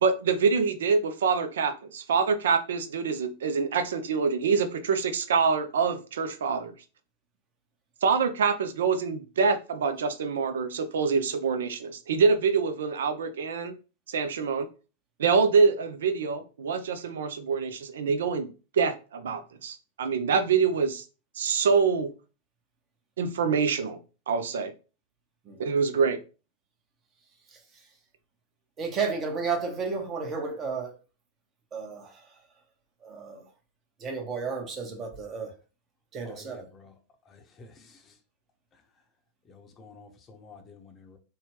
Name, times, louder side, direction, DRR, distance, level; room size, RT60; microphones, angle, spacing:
voice 1, 0.0-6.7 8.0-13.7 14.1-14.7 15.2-18.5 18.7-21.0 21.4-22.1 23.2-24.0 24.3-24.7 25.6-26.2, right 5 dB, 70° right, 0.4 m, -25 dB
voice 2, 28.8-30.9 31.7-32.1 33.0-33.4 34.0-35.5 36.1-36.7, right 5 dB, 30° right, 0.9 m, -32 dB
voice 3, 36.3-36.9 37.3-37.7 39.5-41.2, left 4 dB, 30° left, 0.6 m, -51 dB
2.8 x 2.2 x 3.0 m
hypercardioid pair, 95°, 0 cm